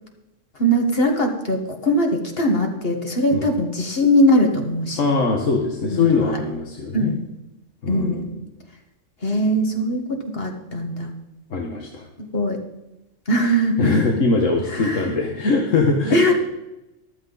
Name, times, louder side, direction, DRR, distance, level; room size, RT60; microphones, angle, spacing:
voice 1, 0.5-5.0 5.9-6.4 6.9-7.3 7.9-8.3 9.2-11.1 12.2-12.6 13.3-13.9 14.7-15.1 16.1-16.3, equal, 50° left, 3 dB, 1.9 m, -21 dB
voice 2, 5.0-7.1 7.8-8.3 11.5-12.1 13.8-16.2, left 3 dB, 80° left, 1 dB, 1.7 m, -21 dB
14.0 x 12.5 x 4.0 m, 0.94 s
omnidirectional pair, 1.3 m